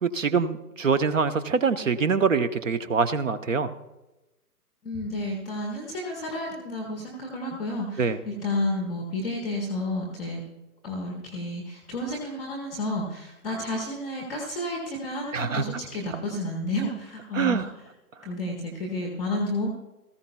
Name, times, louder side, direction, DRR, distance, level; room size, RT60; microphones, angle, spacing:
voice 1, 0.0-3.7 8.0-8.2 15.3-15.6 17.3-17.7, right 5 dB, 55° right, 13 dB, 0.9 m, -24 dB
voice 2, 4.8-10.4 10.8-17.7 18.2-19.7, left 1 dB, ahead, -13 dB, 0.5 m, -31 dB
18.5 x 14.5 x 2.3 m, 1.0 s
figure-of-eight pair, 140°, 47 cm